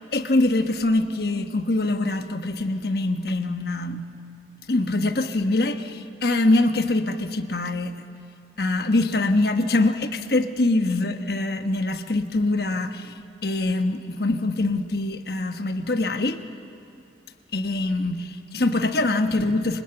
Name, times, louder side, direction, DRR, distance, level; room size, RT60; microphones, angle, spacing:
voice 1, 0.1-4.1 4.7-7.9 8.6-13.1 13.4-16.4 17.5-19.8, left 2 dB, 60° left, 8 dB, 1.2 m, -24 dB
26.5 x 26.5 x 7.9 m, 2.6 s
head